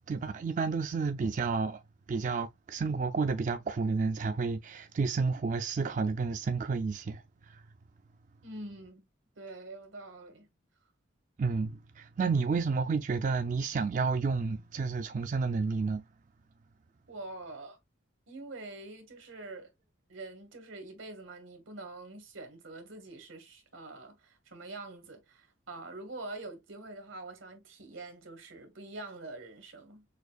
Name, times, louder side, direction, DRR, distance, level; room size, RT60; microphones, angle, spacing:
voice 1, 0.1-1.8 2.1-7.2 11.4-16.0, right 4 dB, 40° right, 0.3 m, -30 dB
voice 2, 8.4-9.0 9.4-10.5 17.1-17.8 18.3-19.7 20.1-30.0, right 2 dB, 90° right, 1.4 m, -45 dB
6.3 x 2.4 x 2.3 m
head